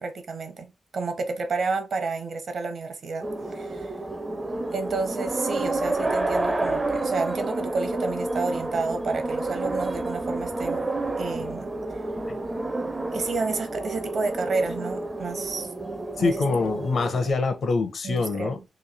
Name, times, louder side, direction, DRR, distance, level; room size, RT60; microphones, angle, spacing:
voice 1, 0.0-3.2 3.5-4.0 4.7-10.8 11.2-11.7 13.1-15.7 16.2-16.4 18.0-18.6, right 3 dB, 60° right, 0.8 m, -30 dB
sound 1, 3.2-17.3, right 2 dB, 20° right, 0.4 m, -30 dB
voice 2, 16.2-18.6, left 4 dB, 65° left, 0.7 m, -25 dB
3.1 x 2.7 x 3.9 m
wide cardioid pair, 130°, 0 cm